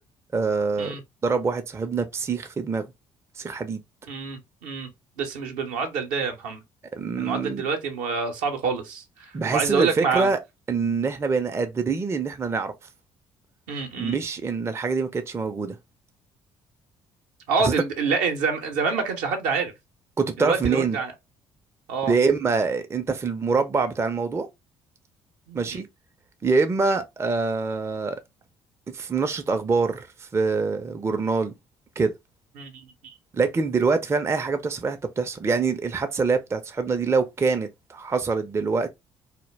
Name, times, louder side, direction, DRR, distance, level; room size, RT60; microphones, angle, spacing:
voice 1, 0.3-1.0 1.2-2.8 3.4-3.8 7.0-7.6 9.3-10.4 10.7-12.7 14.0-15.8 17.6-17.7 20.2-21.0 22.1-24.5 25.5-25.9 26.4-28.2 28.9-31.5 32.0-32.1 33.3-38.9, right 4 dB, 20° right, 0.4 m, -25 dB
voice 2, 4.1-4.9 5.2-6.6 7.2-10.3 13.7-14.2 17.5-19.7 20.4-21.1 21.9-22.1 25.5-25.8 32.6-33.2, right 5 dB, 65° right, 0.6 m, -27 dB
2.2 x 2.1 x 3.1 m
figure-of-eight pair, 50°, 14 cm